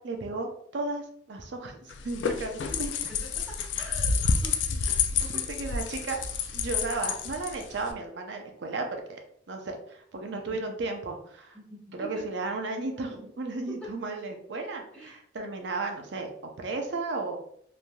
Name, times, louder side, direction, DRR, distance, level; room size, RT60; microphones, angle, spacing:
voice 1, 0.0-2.9 5.3-6.2 6.5-9.2 9.5-11.6 11.9-16.3 16.6-17.4, right 3 dB, 75° right, 3 dB, 0.6 m, -34 dB
sound 1, 1.9-7.9, left 5 dB, 80° left, 0.3 m, -29 dB
voice 2, 2.6-5.4 10.3-10.6 11.5-12.3 13.8-13.9 14.9-15.2, right 1 dB, 5° left, -6 dB, 0.9 m, -45 dB
3.2 x 2.6 x 2.2 m, 0.65 s
head